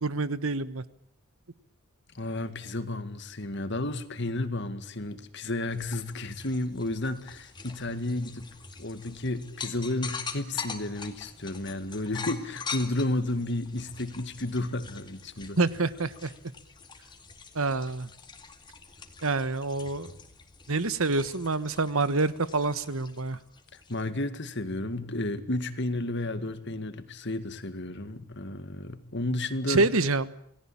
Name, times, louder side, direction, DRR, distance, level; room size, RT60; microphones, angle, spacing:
voice 1, 0.0-0.8 15.6-16.3 17.5-18.1 19.2-20.1 20.7-23.4 29.7-30.3, right 3 dB, 75° right, 15 dB, 1.3 m, -27 dB
voice 2, 2.1-8.5 8.8-15.6 23.9-29.9, left 2 dB, 50° left, 11 dB, 2.1 m, -32 dB
sound 1, 5.7-24.1, left 5 dB, 20° left, 2.2 m, -44 dB
28.5 x 18.5 x 8.7 m, 0.70 s
head